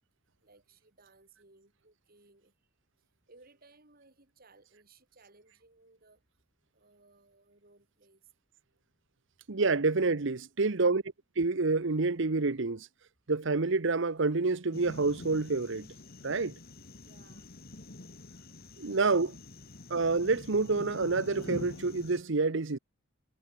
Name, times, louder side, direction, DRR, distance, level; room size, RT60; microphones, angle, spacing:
voice 1, 0.4-2.5 3.3-6.2 6.7-8.3 17.0-17.6 18.8-19.3, right 3 dB, 50° right, 6.3 m, -61 dB
voice 2, 9.5-11.0 11.4-12.9 13.3-15.9 16.2-16.5 18.8-19.3 19.9-22.8, right 3 dB, 65° right, 1.0 m, -28 dB
sound 1, 14.7-22.2, left 1 dB, 50° left, 2.2 m, -46 dB
head